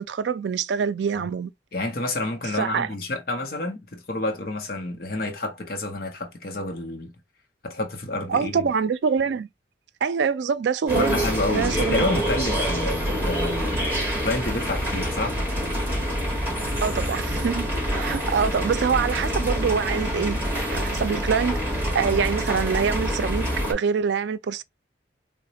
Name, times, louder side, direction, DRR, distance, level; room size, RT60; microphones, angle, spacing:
voice 1, 0.0-1.5 2.5-2.9 8.3-9.5 10.0-11.2 11.5-12.0 16.8-24.6, right 6 dB, 75° right, 0.3 m, -25 dB
voice 2, 1.7-7.1 7.6-8.7 10.9-13.8 14.2-15.4, left 2 dB, 50° left, 0.7 m, -29 dB
sound 1, 10.9-23.7, equal, 10° right, 1.3 m, -26 dB
4.0 x 2.1 x 2.7 m
head